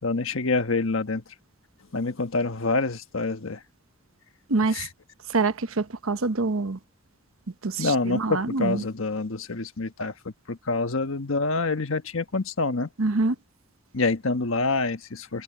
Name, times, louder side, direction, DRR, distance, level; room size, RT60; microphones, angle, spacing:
voice 1, 0.0-1.2 1.9-3.6 4.7-4.9 7.8-12.9 13.9-15.4, left 3 dB, 80° left, 1.3 m, -27 dB
voice 2, 4.5-4.9 5.3-6.8 7.6-8.8 13.0-13.3, right 3 dB, 90° right, 1.1 m, -25 dB
head